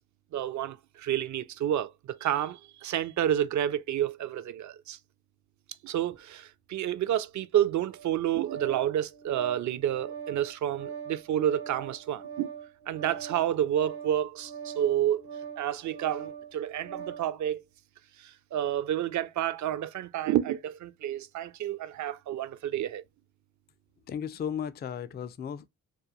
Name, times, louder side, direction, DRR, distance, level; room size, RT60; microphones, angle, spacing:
voice 1, 0.3-5.0 5.8-12.5 12.9-15.2 15.6-17.6 18.2-23.0, right 11 dB, 45° right, 0.4 m, -29 dB
Organ, 7.9-17.3, right 7 dB, 70° right, 1.0 m, -42 dB
voice 2, 24.0-25.7, left 8 dB, 25° left, 0.3 m, -35 dB
2.4 x 2.2 x 2.9 m
hypercardioid pair, 40°, 42 cm